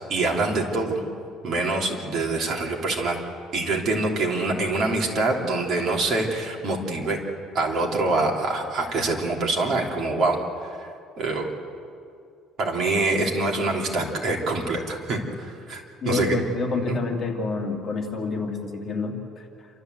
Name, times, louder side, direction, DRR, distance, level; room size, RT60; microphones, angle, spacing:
voice 1, 0.1-1.0 1.4-3.2 3.5-7.2 7.5-10.9 11.2-11.5 12.6-16.3 16.8-17.0, right 2 dB, 40° right, -1 dB, 3.1 m, -25 dB
voice 2, 16.0-19.7, left 3 dB, 30° left, 0 dB, 2.4 m, -28 dB
28.5 x 13.5 x 8.0 m, 2.4 s
cardioid pair, 165°, 0 cm